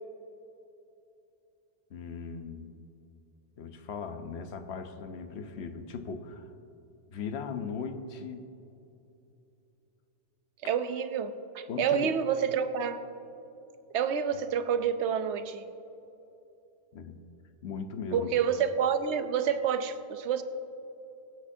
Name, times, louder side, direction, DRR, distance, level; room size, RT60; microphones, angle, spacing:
voice 1, 1.9-2.9 3.6-6.5 7.1-8.5 11.7-12.1 16.9-17.2 17.6-18.3, left 5 dB, 70° left, 8 dB, 1.0 m, -38 dB
voice 2, 10.6-13.0 13.9-15.6 18.1-20.4, right 7 dB, 80° right, 10 dB, 0.9 m, -28 dB
22.0 x 8.6 x 2.7 m, 2.8 s
omnidirectional pair, 1.1 m